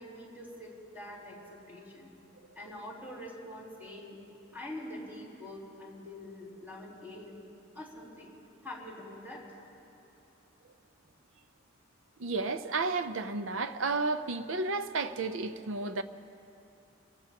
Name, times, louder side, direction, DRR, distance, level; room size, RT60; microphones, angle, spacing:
voice 1, 0.0-2.1 2.6-4.2 4.5-7.4 7.7-8.3 8.6-9.4, left 1 dB, 10° right, 3.7 m, -45 dB
voice 2, 12.2-16.0, right 3 dB, 75° right, 0.6 m, -32 dB
27.5 x 16.0 x 2.9 m
head